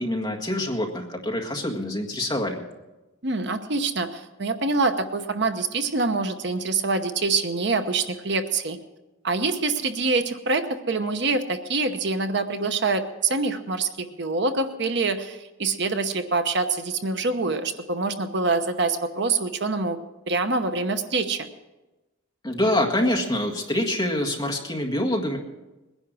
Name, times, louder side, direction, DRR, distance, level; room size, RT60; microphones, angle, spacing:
voice 1, 0.0-2.6 22.4-25.4, left 1 dB, 20° left, 0 dB, 1.8 m, -25 dB
voice 2, 3.2-8.8 9.2-20.0 20.3-21.5, right 3 dB, 60° right, 8 dB, 0.9 m, -25 dB
20.5 x 10.5 x 6.2 m, 1.1 s
head